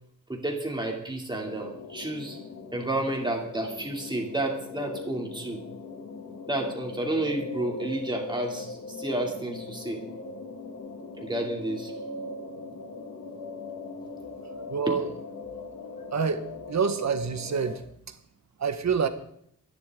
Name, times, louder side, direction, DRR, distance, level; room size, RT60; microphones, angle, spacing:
voice 1, 0.3-2.4 2.7-5.6 6.5-10.1 11.2-11.9 14.9-15.0, right 1 dB, 15° right, 1 dB, 3.0 m, -31 dB
sound 1, 1.3-17.8, left 3 dB, 60° left, 2.0 m, -40 dB
voice 2, 14.7-15.1 16.1-16.4 16.7-17.8 18.1-18.2 18.6-19.1, right 6 dB, 60° right, 9 dB, 1.5 m, -26 dB
27.0 x 11.5 x 3.8 m, 0.69 s
wide cardioid pair, 145°, 31 cm